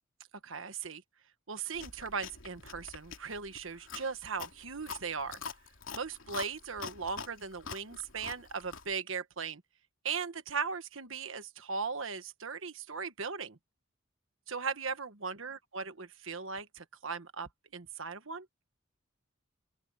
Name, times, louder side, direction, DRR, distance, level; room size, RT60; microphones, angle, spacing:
voice 1, 0.4-1.0 1.5-5.4 5.9-9.6 10.0-13.6 14.5-18.5, right 5 dB, 75° right, 1.4 m, -38 dB
Chewing mastication, 1.7-9.0, left 5 dB, 80° left, 2.8 m, -45 dB
open air
head